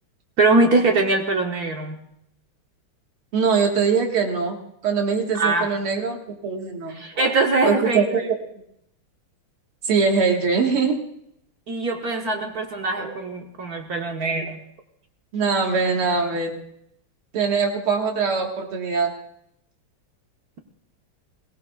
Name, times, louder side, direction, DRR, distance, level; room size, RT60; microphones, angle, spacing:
voice 1, 0.4-2.0 5.3-5.7 6.9-8.0 11.7-14.6, right 3 dB, 55° right, 3 dB, 1.2 m, -22 dB
voice 2, 3.3-4.6 4.8-6.9 7.6-8.0 9.8-11.0 15.3-16.6 17.3-19.1, right 5 dB, 90° right, 2 dB, 2.5 m, -22 dB
22.0 x 17.0 x 2.3 m, 0.75 s
omnidirectional pair, 2.3 m